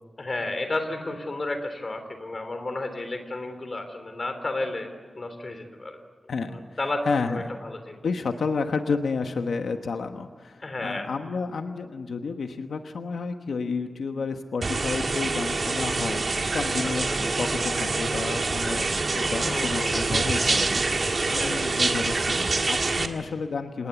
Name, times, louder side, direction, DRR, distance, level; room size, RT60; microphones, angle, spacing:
voice 1, 0.2-4.9 5.2-6.0 6.5-7.0 7.3-8.0 10.6-11.1 17.1-17.2 19.5-20.0 21.4-21.6, left 2 dB, 35° left, 7 dB, 3.4 m, -32 dB
voice 2, 6.3-6.6 7.1-7.5 8.0-23.9, left 4 dB, 90° left, 6 dB, 1.2 m, -31 dB
sound 1, 14.6-23.1, right 3 dB, 45° right, 1.6 m, -26 dB
27.5 x 19.0 x 8.2 m, 1.5 s
wide cardioid pair, 155°, 0 cm